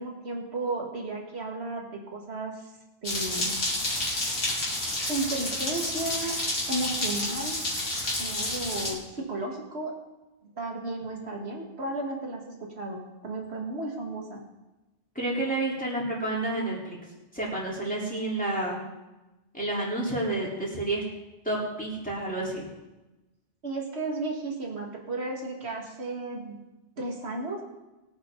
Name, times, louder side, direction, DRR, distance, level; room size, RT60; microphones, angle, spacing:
voice 1, 0.0-2.7 3.0-3.6 5.1-6.4 6.7-7.6 8.2-10.0 10.4-14.4 23.6-26.6 27.0-27.6, right 2 dB, 55° right, 0 dB, 2.3 m, -34 dB
sound 1, 3.0-8.9, left 1 dB, 90° left, 3.3 m, -30 dB
voice 2, 15.2-17.0 17.3-18.8 19.5-21.0 21.4-22.6, right 2 dB, 5° left, -5 dB, 3.9 m, -30 dB
21.5 x 8.9 x 3.9 m, 1.1 s
omnidirectional pair, 1.3 m